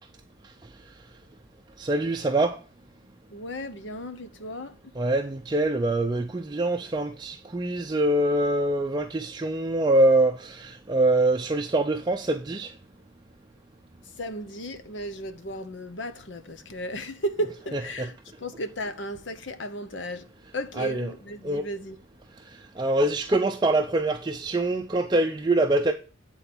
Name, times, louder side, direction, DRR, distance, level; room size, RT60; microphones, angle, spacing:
voice 1, 1.8-2.6 5.0-12.7 18.0-18.1 20.8-21.1 21.4-21.7 22.8-25.9, right 2 dB, 20° right, 0.5 m, -24 dB
voice 2, 3.3-4.8 14.0-20.3 20.5-22.0, equal, 65° left, 1.0 m, -35 dB
8.7 x 4.0 x 6.0 m
head